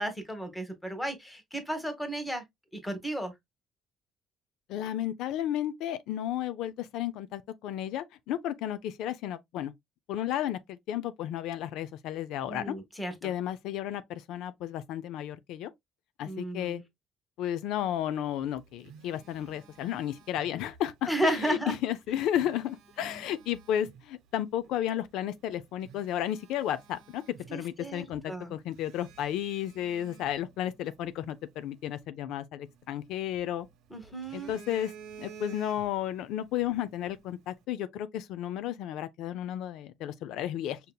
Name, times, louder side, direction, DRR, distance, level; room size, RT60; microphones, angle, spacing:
voice 1, 0.0-2.4 2.8-3.3 12.5-13.1 16.2-16.8 21.1-21.8 23.0-23.1 27.5-28.5 33.9-34.5, right 1 dB, 10° left, 1.2 m, -33 dB
voice 2, 4.7-9.7 10.1-12.7 13.2-15.7 16.2-16.8 17.4-27.2 27.5-33.7 34.3-34.9 35.2-40.8, left 11 dB, 85° left, 0.4 m, -33 dB
Telephone, 18.3-20.9 22.1-24.0 24.6-24.8 25.4-25.5 25.8-27.9 28.1-28.3 28.8-31.1 32.7-33.7 34.0-36.2 36.5-36.7, right 6 dB, 85° right, 1.0 m, -51 dB
5.2 x 2.8 x 2.2 m
cardioid pair, 125°, 0 cm